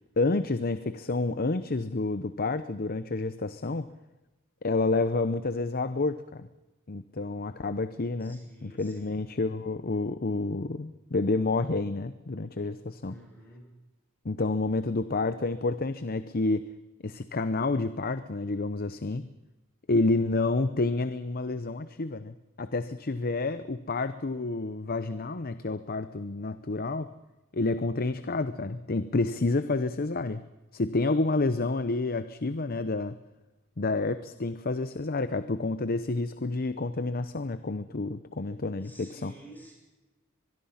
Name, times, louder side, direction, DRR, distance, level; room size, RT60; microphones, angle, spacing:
voice 1, 0.2-3.9 4.6-6.5 6.9-13.2 14.2-16.7 17.0-19.3 19.9-27.1 27.5-30.4 30.7-33.2 33.8-39.3, left 3 dB, 45° left, 12 dB, 0.8 m, -29 dB
voice 2, 8.3-9.2 13.1-13.7 38.8-39.7, right 1 dB, 10° left, -2 dB, 7.7 m, -50 dB
24.0 x 21.5 x 5.8 m, 1.1 s
head